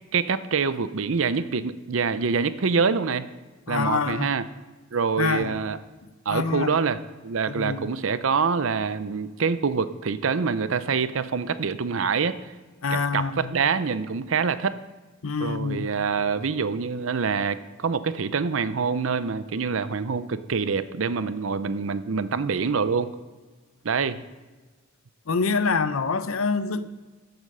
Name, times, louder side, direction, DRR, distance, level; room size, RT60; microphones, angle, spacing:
voice 1, 0.1-3.3 3.7-4.4 4.9-5.8 6.3-7.0 7.2-12.4 12.9-14.8 15.4-23.1 23.8-24.2, right 5 dB, 70° right, 13 dB, 0.6 m, -25 dB
voice 2, 3.7-4.4 5.2-5.5 6.3-6.8 7.5-7.9 12.8-13.5 15.2-15.9 25.3-26.9, left 4 dB, 90° left, 12 dB, 0.7 m, -26 dB
14.0 x 8.0 x 5.4 m, 1.3 s
head